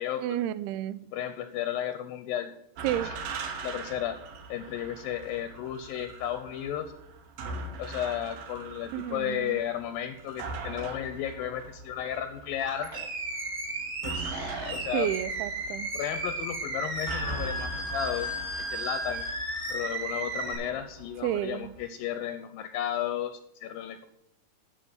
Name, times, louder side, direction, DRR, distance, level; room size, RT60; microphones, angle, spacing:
voice 1, 0.2-1.0 2.8-3.1 8.9-9.6 14.9-15.9 21.2-21.7, right 12 dB, 85° right, 17 dB, 2.5 m, -31 dB
voice 2, 1.1-2.5 3.0-3.2 3.6-4.2 4.5-6.9 7.8-12.9 14.0-15.1 15.9-19.2 19.7-24.1, left 10 dB, 80° left, 10 dB, 2.3 m, -34 dB
sound 1, 2.8-21.8, right 3 dB, 65° right, 2.9 m, -41 dB
Animal, 12.6-20.5, right 2 dB, 30° right, 3.9 m, -34 dB
12.0 x 6.5 x 7.0 m, 0.78 s
omnidirectional pair, 4.6 m